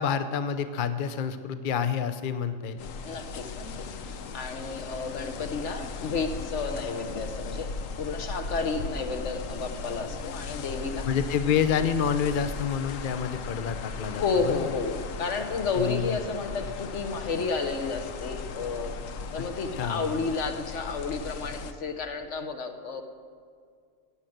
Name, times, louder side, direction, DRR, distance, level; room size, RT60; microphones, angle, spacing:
voice 1, 0.0-2.8 11.1-14.7 15.7-16.2 19.4-19.5 19.8-20.2, left 7 dB, 50° left, 9 dB, 0.7 m, -28 dB
sound 1, 2.8-21.7, left 4 dB, 85° left, 1.2 m, -37 dB
voice 2, 3.0-7.7 8.0-11.1 14.1-23.0, left 4 dB, 65° left, 7 dB, 1.4 m, -31 dB
15.5 x 8.7 x 7.8 m, 2.1 s
omnidirectional pair, 1.3 m